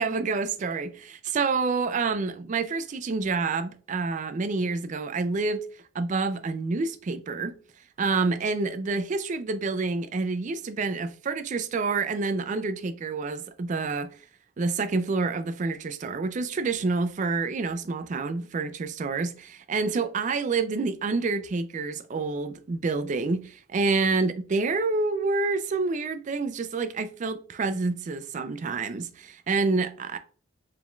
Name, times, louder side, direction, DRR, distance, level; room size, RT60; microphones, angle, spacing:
voice 1, 0.0-5.6 5.9-7.6 8.0-14.2 14.6-30.2, right 4 dB, 40° right, 0.3 m, -28 dB
4.7 x 3.6 x 2.3 m
head